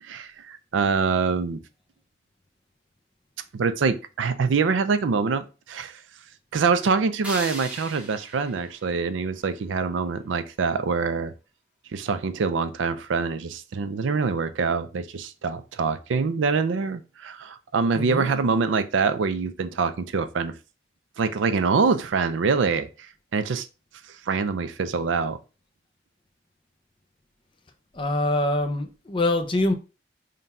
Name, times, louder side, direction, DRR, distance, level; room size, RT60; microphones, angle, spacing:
voice 1, 0.0-1.6 3.5-6.0 6.5-11.3 11.9-20.5 21.2-22.9 23.3-23.7 24.3-25.4, right 5 dB, 85° right, 0.4 m, -25 dB
sound 1, 7.2-10.2, right 1 dB, 5° right, 0.8 m, -40 dB
voice 2, 17.9-18.3 27.9-29.7, left 1 dB, 25° left, 0.5 m, -24 dB
3.8 x 2.2 x 4.1 m
head